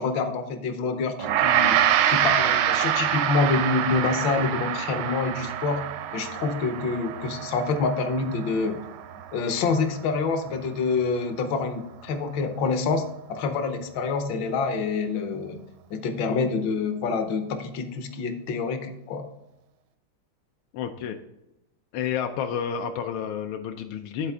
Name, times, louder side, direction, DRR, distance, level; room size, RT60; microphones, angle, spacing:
voice 1, 0.0-1.8 2.1-5.8 6.1-8.8 9.3-15.6 15.9-19.3, left 4 dB, 70° left, 7 dB, 1.5 m, -27 dB
Gong, 1.2-10.6, right 10 dB, 85° right, 1.5 m, -26 dB
voice 2, 20.7-21.2 21.9-24.3, left 8 dB, 85° left, 5 dB, 1.4 m, -30 dB
11.0 x 4.2 x 3.5 m, 0.93 s
omnidirectional pair, 2.3 m